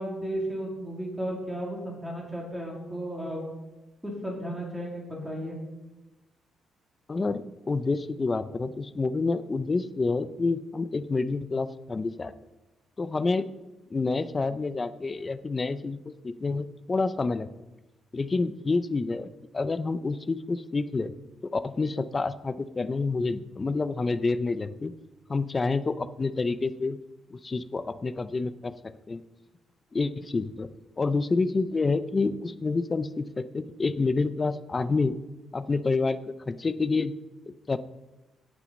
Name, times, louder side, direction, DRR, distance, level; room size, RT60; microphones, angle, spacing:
voice 1, 0.0-3.4 4.0-5.6, right 1 dB, 5° right, -3 dB, 2.2 m, -34 dB
voice 2, 7.1-12.3 13.0-13.5 13.9-17.5 18.1-21.1 21.4-24.9 25.3-27.0 27.3-29.2 29.9-30.7 31.0-35.2 35.5-37.1 37.5-37.8, left 3 dB, 20° left, 13 dB, 0.4 m, -28 dB
17.5 x 6.1 x 5.2 m, 1.0 s
cardioid pair, 175°, 0 cm